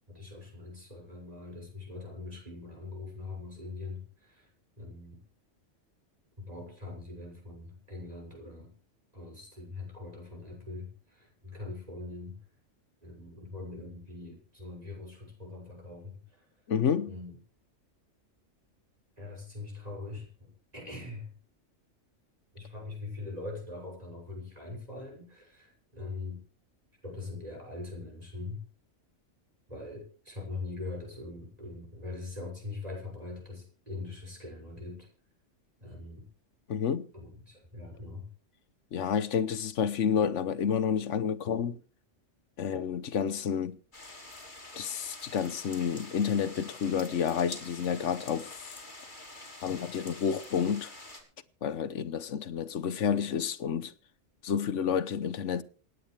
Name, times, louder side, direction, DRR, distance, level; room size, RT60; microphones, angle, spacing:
voice 1, 0.1-4.5 4.8-5.2 6.4-8.7 9.1-12.4 13.0-16.4 17.1-17.3 19.2-21.3 22.5-26.4 27.0-28.6 29.7-35.1 35.8-36.3 37.1-38.3, left 3 dB, 30° right, 6.5 m, -42 dB
voice 2, 16.7-17.1 36.7-37.1 38.9-41.8 42.6-43.8 44.8-48.8 49.6-50.9 51.6-53.9 54.4-55.6, left 7 dB, 75° left, 1.2 m, -30 dB
sound 1, 43.9-51.2, left 2 dB, 40° left, 3.4 m, -47 dB
27.5 x 9.6 x 3.4 m
omnidirectional pair, 1.3 m